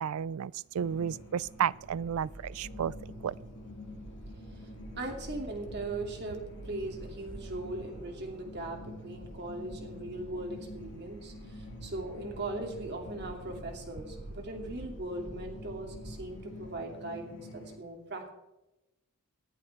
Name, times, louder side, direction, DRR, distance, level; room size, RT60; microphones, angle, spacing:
voice 1, 0.0-2.9 3.2-3.3, right 8 dB, 80° right, 0.4 m, -32 dB
sound 1, 0.8-17.8, left 1 dB, 60° left, 2.3 m, -48 dB
sound 2, 1.3-16.8, right 1 dB, 35° right, 1.1 m, -49 dB
voice 2, 5.0-18.3, right 2 dB, 50° right, 2.6 m, -39 dB
19.0 x 11.0 x 3.5 m
head